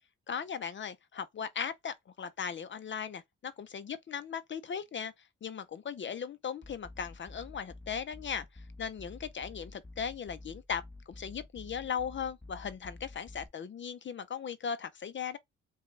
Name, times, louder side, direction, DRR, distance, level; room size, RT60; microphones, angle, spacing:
voice 1, 0.3-5.1 5.4-15.4, left 7 dB, 40° left, 0.5 m, -38 dB
sound 1, 6.6-13.5, left 2 dB, 5° left, 1.2 m, -50 dB
5.0 x 2.3 x 3.2 m
cardioid pair, 90°, 30 cm